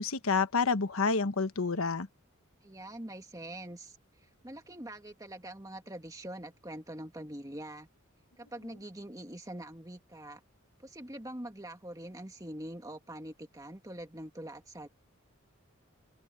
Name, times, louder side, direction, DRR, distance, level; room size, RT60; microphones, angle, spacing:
voice 1, 0.0-2.1, left 4 dB, 80° left, 1.2 m, -28 dB
voice 2, 2.6-7.9 8.4-10.4 10.8-14.9, right 1 dB, 15° right, 1.9 m, -44 dB
open air
head